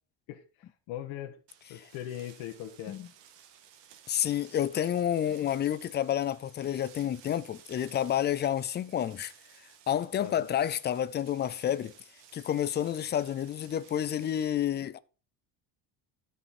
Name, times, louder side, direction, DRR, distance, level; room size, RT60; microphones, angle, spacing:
voice 1, 0.9-1.4 1.7-3.0 10.2-10.5, left 11 dB, 85° left, 1.4 m, -39 dB
sound 1, 1.5-14.5, right 9 dB, 70° right, 1.7 m, -56 dB
voice 2, 4.1-9.3 9.9-11.9 12.3-15.0, left 10 dB, 25° left, 0.3 m, -29 dB
12.5 x 5.5 x 4.2 m
cardioid pair, 155°, 45 cm